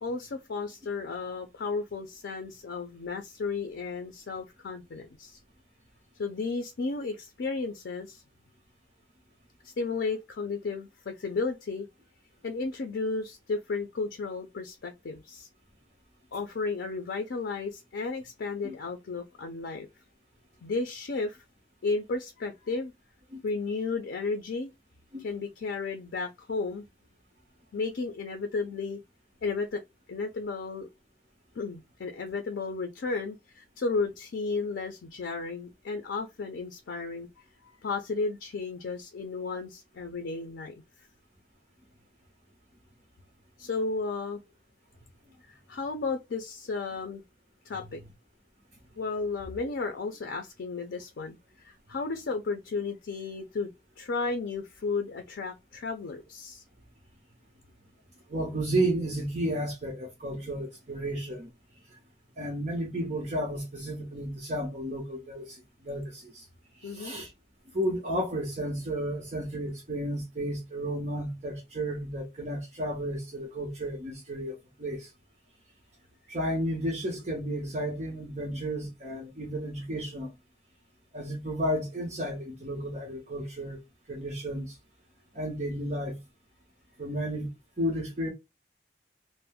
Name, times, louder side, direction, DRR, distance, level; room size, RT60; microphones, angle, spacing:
voice 1, 0.0-5.4 6.2-8.2 9.6-11.9 12.4-15.5 16.3-19.9 20.6-21.4 21.8-22.9 23.4-24.7 25.2-26.9 27.7-29.0 29.4-29.8 30.1-30.9 31.6-37.3 37.6-40.8 43.6-44.4 45.5-47.2 47.7-48.0 49.0-53.7 54.0-56.6 66.8-67.2, left 4 dB, 90° left, 0.5 m, -33 dB
voice 2, 58.3-61.5 62.4-66.4 66.8-67.3 67.7-75.1 76.3-80.3 81.1-83.8 84.1-84.8 85.3-86.2 87.0-88.3, right 1 dB, 40° right, 0.7 m, -32 dB
2.6 x 2.0 x 3.5 m
head